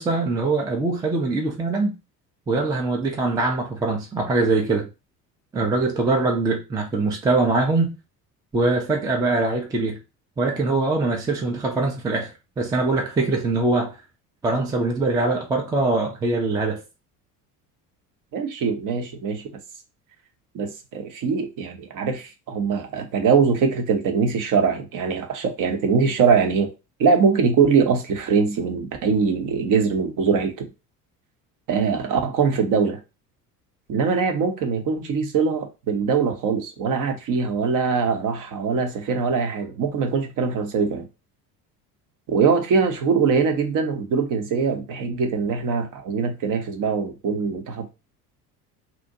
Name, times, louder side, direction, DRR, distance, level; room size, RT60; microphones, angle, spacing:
voice 1, 0.0-1.9 2.5-4.9 5.5-7.9 8.5-10.0 10.4-14.0 14.4-16.8, right 3 dB, 10° right, 0.4 m, -23 dB
voice 2, 18.3-19.4 20.5-26.7 27.0-30.7 31.7-33.0 33.9-41.1 42.3-47.9, right 5 dB, 40° right, 0.7 m, -22 dB
2.6 x 2.1 x 2.7 m
figure-of-eight pair, 65°, 48 cm